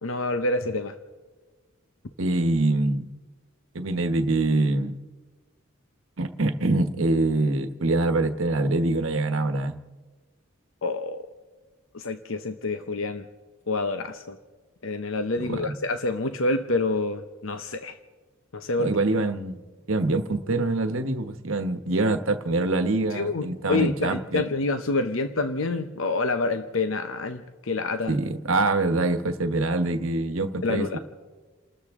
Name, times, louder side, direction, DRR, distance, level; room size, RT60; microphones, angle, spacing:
voice 1, 0.0-0.9 10.8-11.2 11.9-13.3 13.7-14.4 14.8-17.9 18.5-18.9 23.1-28.2 30.6-31.0, left 3 dB, 70° left, 8 dB, 0.8 m, -27 dB
voice 2, 2.2-3.1 3.7-5.0 6.2-9.7 15.5-15.7 18.8-19.6 19.9-24.5 28.1-31.0, right 2 dB, 70° right, 9 dB, 1.2 m, -25 dB
29.5 x 13.5 x 3.6 m, 1.3 s
head